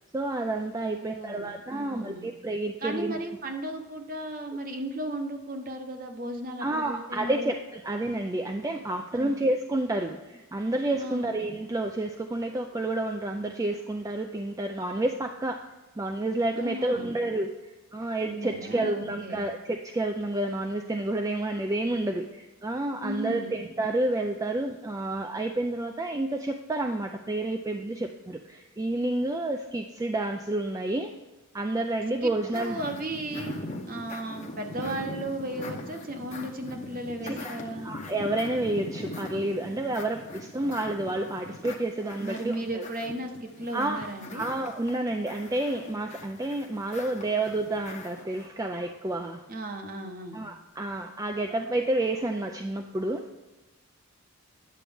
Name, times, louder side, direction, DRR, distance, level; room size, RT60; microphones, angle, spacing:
voice 1, 0.1-3.2 6.6-15.6 16.0-17.5 17.9-31.2 31.5-32.8 37.2-37.5 37.8-42.8 43.7-44.0 44.3-49.4 50.3-53.2, right 2 dB, 15° right, 4 dB, 0.3 m, -30 dB
voice 2, 0.8-2.3 2.8-7.6 9.1-9.4 10.9-11.3 16.5-17.1 18.2-19.5 23.0-23.5 32.2-33.5 33.9-37.9 42.2-44.5 49.5-50.4, right 1 dB, 40° right, 5 dB, 0.9 m, -35 dB
sound 1, 32.5-48.5, left 2 dB, 30° left, 0.8 m, -41 dB
10.0 x 7.2 x 3.5 m, 1.1 s
head